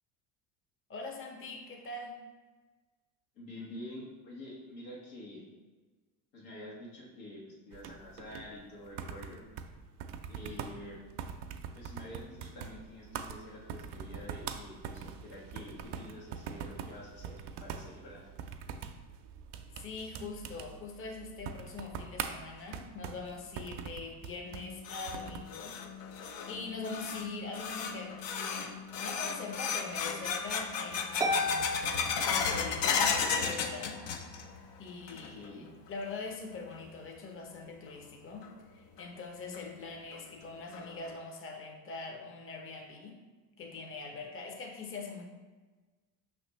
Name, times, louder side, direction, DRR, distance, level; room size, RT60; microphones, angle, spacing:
voice 1, 0.9-2.2 19.8-31.7 32.2-34.1 34.8-43.2 43.6-45.2, left 3 dB, 25° left, 2 dB, 0.7 m, -43 dB
voice 2, 3.3-5.5 6.3-9.4 10.3-11.0 11.7-18.3 35.1-35.7, left 1 dB, 85° left, -4 dB, 1.5 m, -47 dB
sound 1, 7.7-25.5, right 7 dB, 55° right, 0.5 m, -43 dB
sound 2, 24.5-34.6 34.9-35.5 35.9-36.0 36.7-36.8 38.4-38.5 39.0-39.1 39.5-39.6 40.1-40.2 40.7-41.1, left 6 dB, 60° left, 0.7 m, -34 dB
Harp, 31.2-33.1, left 1 dB, 10° right, 0.4 m, -34 dB
5.5 x 3.1 x 3.1 m, 1.3 s
hypercardioid pair, 75°, 50 cm